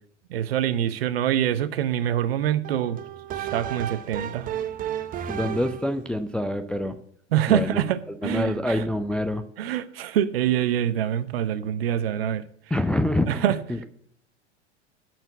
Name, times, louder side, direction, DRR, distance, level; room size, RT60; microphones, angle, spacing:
voice 1, 0.3-3.0 3.4-4.5 7.3-8.8 9.6-12.4 13.3-13.6, right 10 dB, 60° right, 0.9 m, -25 dB
sound 1, 2.6-6.0, right 10 dB, 25° right, 0.7 m, -33 dB
voice 2, 5.3-7.0 7.5-9.4 12.7-13.9, left 1 dB, 5° left, 0.4 m, -26 dB
13.0 x 4.5 x 8.0 m
figure-of-eight pair, 85°, 34 cm